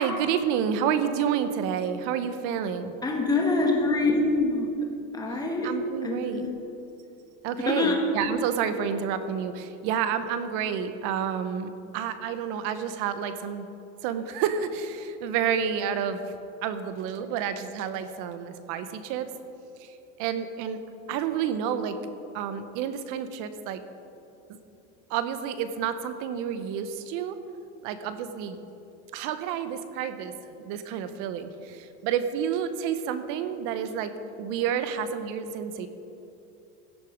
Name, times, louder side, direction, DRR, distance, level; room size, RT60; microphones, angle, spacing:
voice 1, 0.0-2.9 5.6-6.4 7.4-13.7 14.0-16.2 16.6-19.3 19.8-19.9 20.2-20.8 21.1-22.0 22.3-23.8 25.1-27.4 27.8-28.6 29.1-30.3 30.6-35.9, right 8 dB, 55° right, 11 dB, 0.9 m, -29 dB
voice 2, 3.0-4.7 5.1-5.7 6.0-6.5 7.6-8.0, left 3 dB, 10° left, 1 dB, 1.4 m, -25 dB
16.5 x 6.6 x 5.1 m, 2.8 s
supercardioid pair, 140°, 37 cm